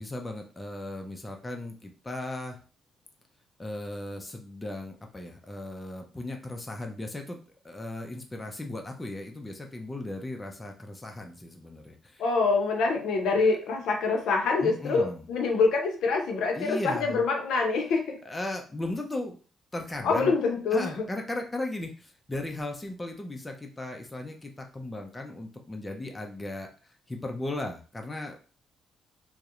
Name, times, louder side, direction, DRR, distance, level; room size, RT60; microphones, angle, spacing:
voice 1, 0.0-2.6 3.6-7.4 7.6-12.2 13.4-13.5 14.6-15.2 16.5-17.2 18.3-19.4 19.7-20.3 20.7-28.4, left 1 dB, 15° left, 3 dB, 0.4 m, -37 dB
voice 2, 12.2-18.2 20.0-21.0, left 4 dB, 80° left, 3 dB, 0.6 m, -25 dB
2.6 x 2.0 x 2.4 m, 0.38 s
cardioid pair, 90°, 0 cm